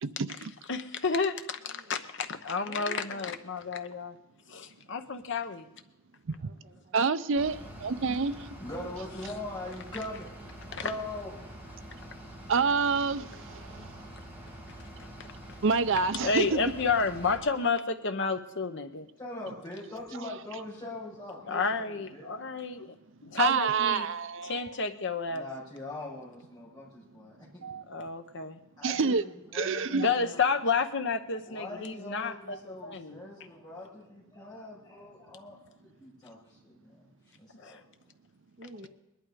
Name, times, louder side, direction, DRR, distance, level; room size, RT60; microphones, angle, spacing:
voice 1, 0.0-0.5 6.3-6.5 6.9-8.6 12.5-13.9 15.6-16.6 23.4-24.8 27.6-27.8 28.8-29.2 29.5-30.2 32.5-32.6, right 5 dB, 55° right, 0.5 m, -28 dB
voice 2, 0.7-4.1 4.5-5.6 10.7-10.8 16.2-19.1 21.5-22.9 23.2-24.1 24.4-25.5 27.9-28.6 29.9-33.2 37.5-37.8, left 4 dB, 55° left, 1.0 m, -31 dB
voice 3, 1.7-2.0 2.6-3.3 6.3-7.0 38.6-38.9, right 1 dB, 35° right, 1.6 m, -49 dB
Bus / Idling, 7.4-17.4, right 1 dB, 10° right, 2.1 m, -46 dB
voice 4, 8.6-10.3 10.8-11.3 19.2-22.4 22.7-22.8 25.3-27.6 28.8-30.4 31.4-37.8, left 2 dB, 20° left, 5.6 m, -42 dB
20.5 x 11.5 x 5.0 m
head